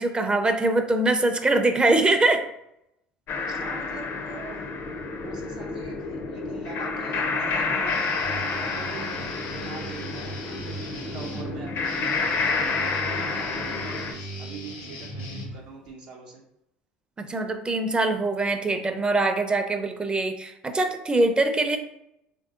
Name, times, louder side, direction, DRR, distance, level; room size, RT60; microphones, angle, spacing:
voice 1, 0.0-2.4 17.2-21.8, right 2 dB, 20° right, 7 dB, 0.4 m, -23 dB
sound 1, 3.3-14.1, left 4 dB, 50° left, 0.4 m, -29 dB
voice 2, 3.5-4.6 5.2-9.3 9.6-16.4, right 4 dB, 80° right, -3 dB, 0.7 m, -43 dB
Guitar, 7.9-15.9, equal, 85° left, 0.9 m, -38 dB
3.3 x 2.6 x 2.4 m, 0.80 s
hypercardioid pair, 75°, 5 cm